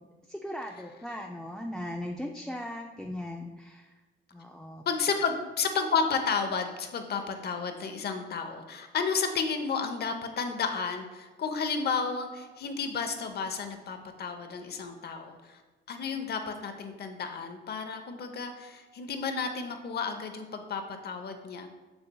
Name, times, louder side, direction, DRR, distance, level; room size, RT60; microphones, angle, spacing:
voice 1, 0.3-3.9 4.3-4.8, left 1 dB, 5° left, 1 dB, 0.4 m, -38 dB
voice 2, 4.9-15.6 15.9-21.7, left 5 dB, 55° left, 6 dB, 0.8 m, -32 dB
6.9 x 6.6 x 2.3 m, 1.2 s
cardioid pair, 90°, 20 cm